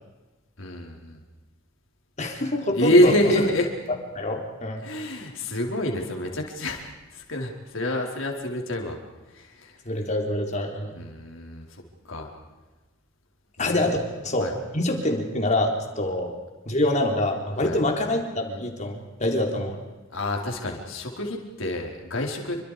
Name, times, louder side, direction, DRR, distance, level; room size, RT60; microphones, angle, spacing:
voice 1, 0.6-1.2 2.7-3.7 4.8-6.8 7.1-9.0 9.3-9.8 10.9-12.3 13.6-14.0 14.4-14.5 17.6-17.8 20.1-22.6, left 1 dB, 75° left, 1 dB, 4.6 m, -26 dB
voice 2, 2.2-3.1 4.1-4.8 9.8-10.9 13.6-14.0 14.2-14.5 14.7-16.4 16.7-19.8, left 1 dB, 35° left, 2 dB, 4.0 m, -25 dB
28.5 x 25.0 x 5.2 m, 1.2 s
head